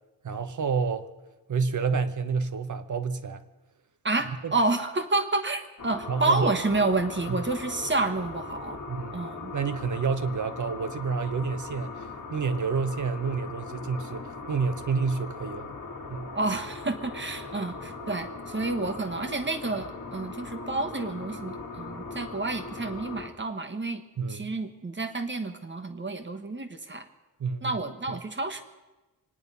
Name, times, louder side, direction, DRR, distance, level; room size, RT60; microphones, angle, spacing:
voice 1, 0.2-1.1 1.5-3.4 4.4-4.5 6.1-6.5 7.3-7.4 8.9-9.2 9.5-15.7 16.1-16.3 24.2-24.5 27.4-27.8 28.1-28.2, right 5 dB, 50° right, 1.0 m, -29 dB
voice 2, 4.0-8.8 9.1-9.5 16.3-24.0 24.3-27.1 27.6-28.6, right 3 dB, 30° right, 1.3 m, -29 dB
sound 1, 5.8-23.3, left 3 dB, 50° left, 1.6 m, -39 dB
25.5 x 9.9 x 5.5 m
wide cardioid pair, 165°, 38 cm